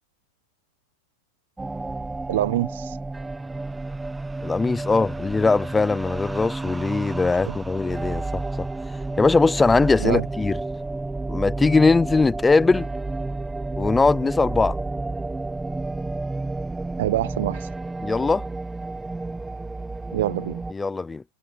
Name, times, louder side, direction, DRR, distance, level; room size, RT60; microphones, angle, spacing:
sound 1, 1.6-20.7, right 2 dB, 5° right, 1.2 m, -31 dB
voice 1, 2.3-3.0 7.4-7.6 10.0-10.3 17.0-17.7 20.1-20.6, right 14 dB, 70° right, 0.4 m, -25 dB
voice 2, 4.4-8.7 9.2-10.6 11.3-12.9 13.8-14.8 18.0-18.4 20.7-21.2, left 3 dB, 10° left, 0.5 m, -20 dB
supercardioid pair, 145°, 0 cm